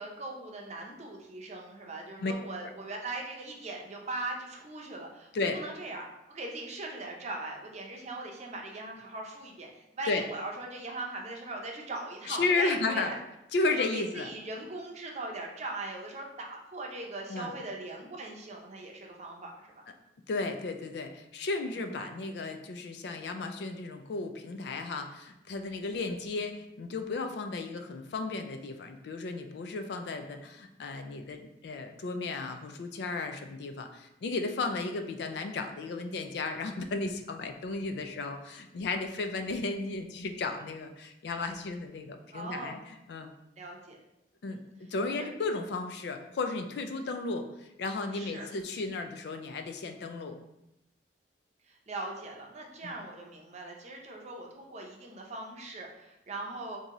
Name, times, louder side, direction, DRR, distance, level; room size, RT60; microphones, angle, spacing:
voice 1, 0.0-13.2 13.6-19.9 21.7-22.1 42.3-42.8 43.6-44.0 44.5-44.6 45.1-45.3 48.1-48.5 51.7-56.8, right 2 dB, 40° right, 0 dB, 0.6 m, -40 dB
voice 2, 12.3-13.1 13.5-14.3 17.3-17.5 20.3-43.3 44.4-50.4 52.8-53.0, left 3 dB, 65° left, 6 dB, 0.4 m, -34 dB
3.6 x 2.7 x 2.9 m, 0.86 s
head